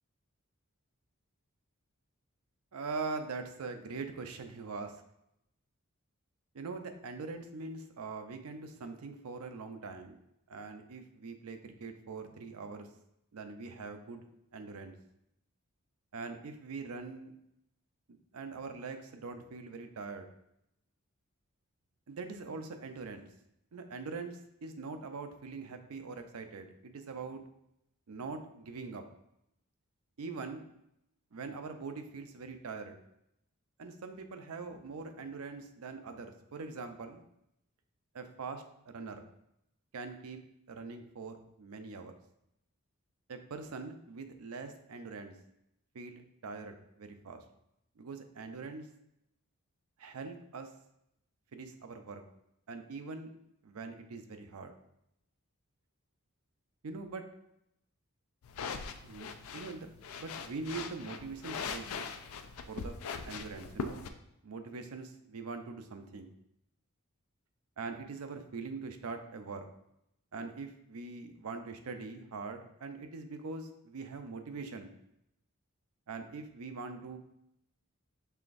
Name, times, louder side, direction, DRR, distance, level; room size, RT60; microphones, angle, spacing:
voice 1, 2.7-5.0 6.5-10.2 10.5-12.9 13.3-14.3 14.5-15.0 16.1-17.3 18.3-20.3 22.1-23.3 23.7-27.4 28.1-29.1 30.2-30.7 31.3-33.0 33.8-37.2 38.1-39.2 39.9-40.4 40.7-42.1 43.3-45.3 45.9-47.4 48.0-48.9 50.0-50.7 51.5-52.2 52.7-53.3 53.6-54.7 56.8-57.2 59.0-59.9 60.1-62.1 62.7-63.0 63.2-64.1 64.4-66.3 67.8-69.7 70.3-74.9 76.1-77.2, right 4 dB, 90° right, 7 dB, 0.5 m, -43 dB
sound 1, 58.4-64.1, left 5 dB, 75° left, 0.4 m, -41 dB
5.7 x 3.4 x 2.5 m, 0.80 s
head